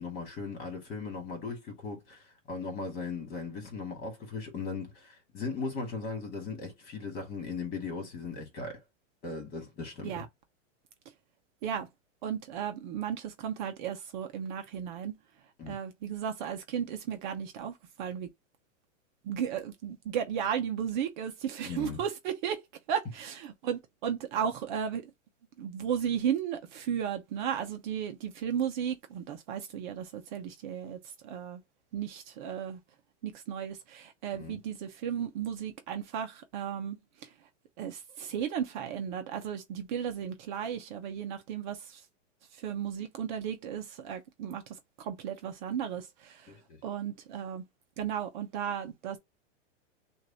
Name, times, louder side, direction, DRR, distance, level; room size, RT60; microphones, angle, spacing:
voice 1, 0.0-8.8 9.2-10.2 15.6-15.7 21.6-22.0 34.3-34.6 46.5-46.8, left 4 dB, 25° left, 2.3 m, -38 dB
voice 2, 12.2-15.1 15.7-18.3 19.2-22.6 22.9-25.1 25.6-31.6 31.9-32.8 33.2-37.3 37.8-42.0 42.6-44.6 45.0-46.5 46.8-47.6 48.0-49.2, right 8 dB, 40° right, 0.8 m, -34 dB
6.5 x 2.7 x 2.8 m
supercardioid pair, 160°, 36 cm